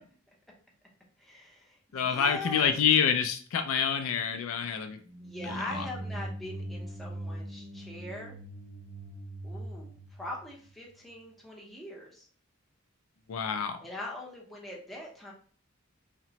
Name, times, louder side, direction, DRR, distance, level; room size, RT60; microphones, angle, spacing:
voice 1, 1.2-2.8 5.2-8.4 9.4-12.3 13.8-15.3, left 2 dB, ahead, -4 dB, 0.6 m, -42 dB
voice 2, 1.9-5.0 5.4-5.9 13.3-13.8, left 7 dB, 75° left, 8 dB, 0.3 m, -27 dB
sound 1, 5.0-11.0, right 1 dB, 50° right, 0.6 m, -41 dB
2.8 x 2.0 x 2.8 m, 0.43 s
head